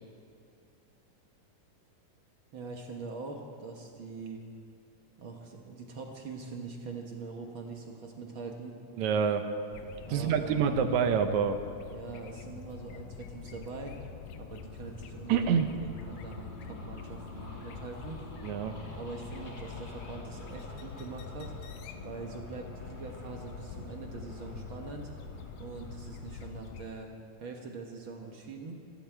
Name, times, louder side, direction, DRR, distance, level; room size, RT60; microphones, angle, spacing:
voice 1, 2.5-4.4 5.2-8.8 10.1-10.8 11.9-14.0 14.3-18.2 19.0-21.5 21.9-25.1 25.6-27.1 27.4-28.8, right 4 dB, 55° right, 1 dB, 1.4 m, -43 dB
voice 2, 9.0-9.4 10.1-11.6 15.3-15.7 18.4-18.8, right 7 dB, 75° right, 8 dB, 1.9 m, -26 dB
sound 1, 9.7-26.9, left 7 dB, 80° left, 1.5 m, -45 dB
sound 2, 14.5-26.5, left 1 dB, 55° left, 0.5 m, -49 dB
27.5 x 11.5 x 4.5 m, 2.4 s
omnidirectional pair, 3.8 m